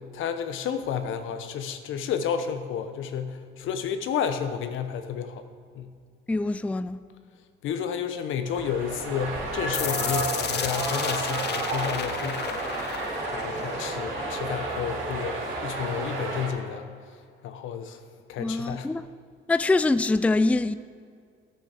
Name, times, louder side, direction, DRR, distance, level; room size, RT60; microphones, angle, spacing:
voice 1, 0.1-5.4 5.7-5.9 7.6-12.6 13.3-16.9 17.4-18.0 18.3-18.9, left 7 dB, 85° left, 0.9 m, -31 dB
voice 2, 6.3-7.0 18.4-19.0 19.5-20.7, left 2 dB, 5° left, 0.4 m, -24 dB
sound 1, 8.4-16.5, right 2 dB, 85° right, 3.0 m, -31 dB
sound 2, 9.7-15.7, left 9 dB, 60° left, 0.6 m, -34 dB
13.0 x 6.8 x 6.6 m
cardioid pair, 90°, 20 cm